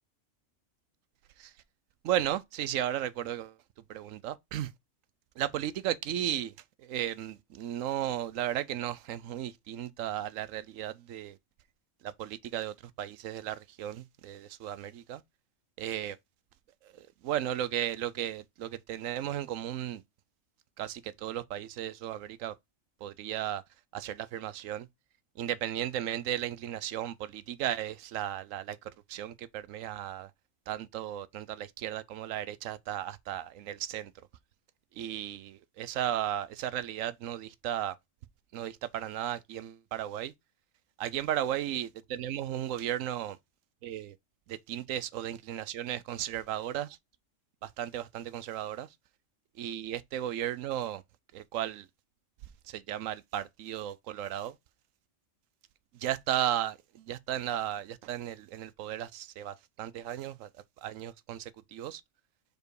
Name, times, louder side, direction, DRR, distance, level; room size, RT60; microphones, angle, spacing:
voice 1, 2.0-3.6 3.9-4.7 5.4-6.5 6.8-11.4 12.0-15.2 15.8-16.2 16.8-20.0 20.8-22.5 23.0-23.6 23.9-24.9 25.4-30.3 30.7-34.1 35.0-38.0 38.5-40.3 41.0-43.4 43.8-44.1 44.5-47.0 47.6-48.9 49.6-51.0 51.3-51.9 52.7-54.5 56.0-60.5 60.8-62.0, right 11 dB, 80° right, 1.0 m, -35 dB
5.0 x 4.6 x 4.7 m
omnidirectional pair, 1.3 m